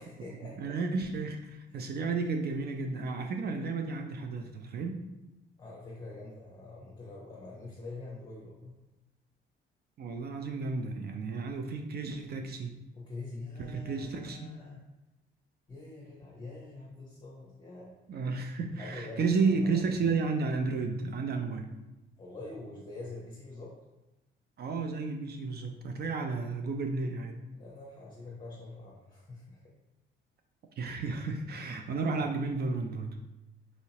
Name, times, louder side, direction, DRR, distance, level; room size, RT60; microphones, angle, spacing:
voice 1, 0.0-0.8 1.7-1.9 5.6-8.7 12.9-14.8 15.7-17.9 18.7-19.8 22.2-23.7 27.5-29.6 32.2-32.3, left 2 dB, 20° left, -5 dB, 0.9 m, -45 dB
voice 2, 0.6-5.0 10.0-12.8 13.6-14.5 18.1-21.8 24.6-27.4 30.8-33.2, right 4 dB, 50° right, 5 dB, 0.4 m, -32 dB
4.1 x 2.8 x 2.9 m, 1.0 s
cardioid pair, 105°, 21 cm